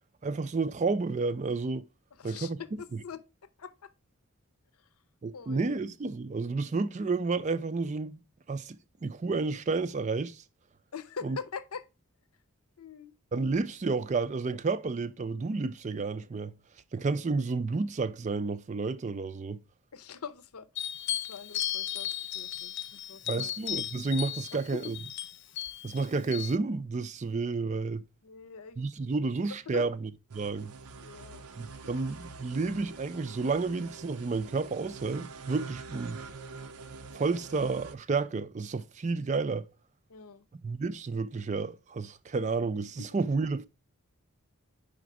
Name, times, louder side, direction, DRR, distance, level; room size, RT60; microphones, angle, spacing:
voice 1, 0.2-1.9 2.2-2.6 5.2-8.2 8.5-10.4 11.2-11.4 13.3-16.5 16.9-19.6 23.3-25.0 25.8-28.0 28.8-30.0 30.3-30.7 31.6-36.2 37.1-39.7 40.6-43.7, right 4 dB, 30° right, 0.3 m, -31 dB
voice 2, 2.1-3.3 3.6-3.9 4.7-4.9 5.3-5.8 10.9-11.9 12.8-13.1 19.9-20.9 21.2-23.5 24.5-24.9 28.2-29.9 31.0-31.9 40.1-40.4 43.0-43.1, left 6 dB, 85° left, 0.7 m, -44 dB
sound 1, 20.8-26.6, left 12 dB, 50° left, 0.4 m, -36 dB
sound 2, 30.3-37.9, right 4 dB, 85° right, 0.7 m, -45 dB
5.0 x 5.0 x 4.7 m
head